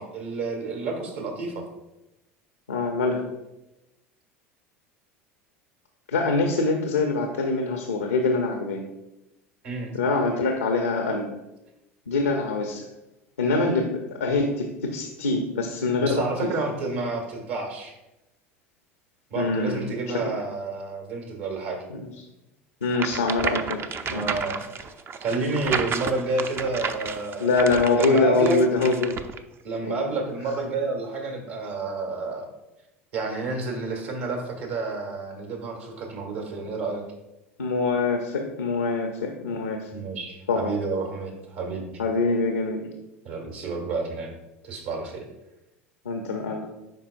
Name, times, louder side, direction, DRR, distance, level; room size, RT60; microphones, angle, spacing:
voice 1, 0.0-1.6 9.6-10.0 16.0-17.9 19.3-21.8 24.1-24.7 25.2-27.5 28.0-28.6 29.6-32.5 33.1-37.0 39.9-41.9 43.2-44.3 44.6-45.3, right 3 dB, 65° right, 1 dB, 2.0 m, -30 dB
voice 2, 2.7-3.2 6.1-8.8 9.9-11.3 12.1-12.8 13.4-13.9 14.2-16.5 19.3-19.9 21.9-22.1 22.8-23.8 24.1-24.3 27.4-29.2 29.8-30.0 37.6-39.9 40.5-40.8 42.0-42.9 46.0-46.7, left 3 dB, 85° left, 3 dB, 0.6 m, -24 dB
sound 1, 22.9-29.4, right 6 dB, 35° right, 0.5 m, -32 dB
11.0 x 4.3 x 2.5 m, 0.96 s
hypercardioid pair, 75°, 7 cm